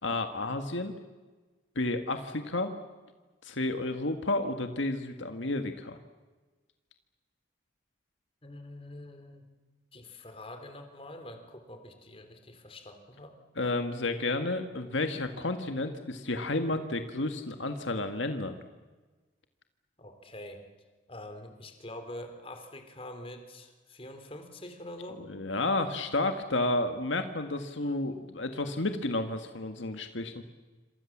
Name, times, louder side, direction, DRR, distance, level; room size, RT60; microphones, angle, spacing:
voice 1, 0.0-0.9 1.7-2.7 3.4-6.0 13.6-18.5 25.3-30.4, left 2 dB, 75° left, 7 dB, 1.7 m, -31 dB
voice 2, 8.4-9.5 9.9-13.3 20.0-20.6 21.1-25.2, left 1 dB, 30° left, 7 dB, 3.4 m, -45 dB
28.0 x 26.5 x 7.3 m, 1.3 s
head